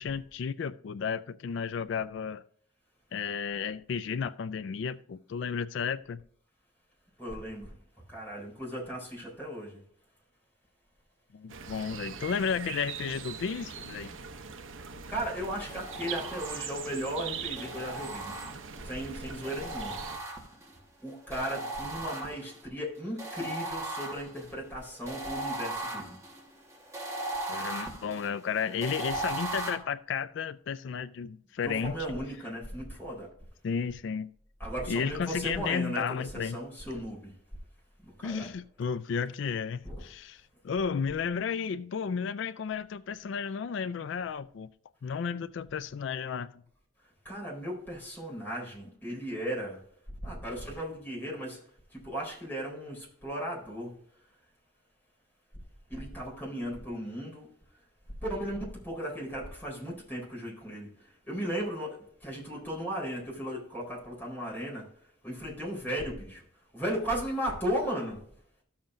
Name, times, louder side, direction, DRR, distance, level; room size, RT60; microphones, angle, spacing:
voice 1, 0.0-2.4 3.1-6.2 11.3-14.1 27.5-31.9 33.6-34.3 34.9-36.6 38.2-44.7 45.0-46.5, left 6 dB, 65° left, 0.3 m, -33 dB
voice 2, 7.2-7.7 8.1-9.8 15.1-18.3 18.8-20.0 21.0-26.1 31.6-33.3 34.6-37.3 38.0-38.5 39.8-40.1 47.2-49.8 50.2-51.6 51.9-53.9 55.9-57.5 58.2-64.8 65.2-66.4 66.7-68.2, equal, 10° left, 3.9 m, -36 dB
sound 1, 11.5-20.2, right 6 dB, 75° right, 0.7 m, -42 dB
sound 2, 15.7-16.9 17.6-18.9 19.4-20.8 21.3-22.6 23.2-29.7, right 2 dB, 15° right, 1.4 m, -38 dB
13.5 x 7.2 x 2.5 m
head